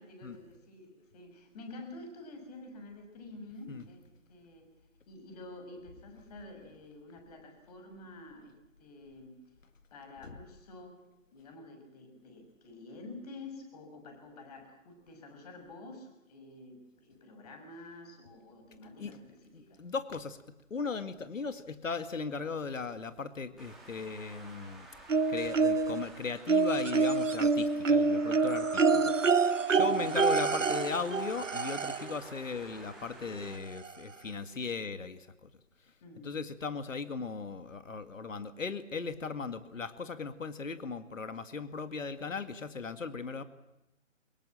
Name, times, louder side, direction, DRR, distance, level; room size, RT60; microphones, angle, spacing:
voice 1, 0.0-4.7 5.1-9.4 9.9-11.0 11.3-19.8 29.7-30.1 36.0-36.3, left 2 dB, 30° left, 5 dB, 6.2 m, -49 dB
voice 2, 19.5-20.4 20.7-24.9 25.3-29.1 29.7-35.5 36.2-43.4, left 5 dB, 75° left, 11 dB, 2.1 m, -37 dB
Traffic noise roadway noise, 23.6-33.6, right 2 dB, ahead, 2.6 m, -51 dB
sound 1, 25.1-26.0 26.5-32.2 33.4-33.5 33.8-33.9, right 4 dB, 70° right, 1.3 m, -27 dB
24.5 x 21.5 x 7.6 m, 0.93 s
figure-of-eight pair, 155°, 39 cm